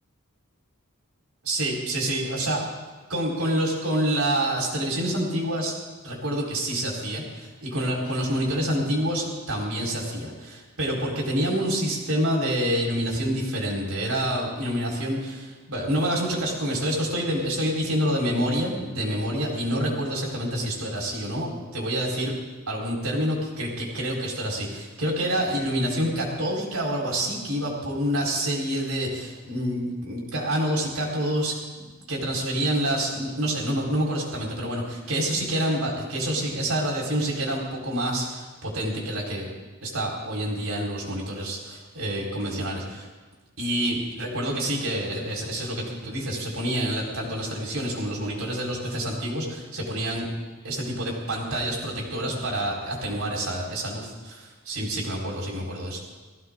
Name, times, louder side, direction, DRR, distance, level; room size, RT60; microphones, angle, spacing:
voice 1, 1.4-2.6 3.1-5.7 6.0-22.3 22.7-39.5 39.8-43.1 43.6-50.3 50.6-56.0, equal, 85° right, -2 dB, 4.4 m, -27 dB
19.5 x 15.5 x 3.8 m, 1.3 s
head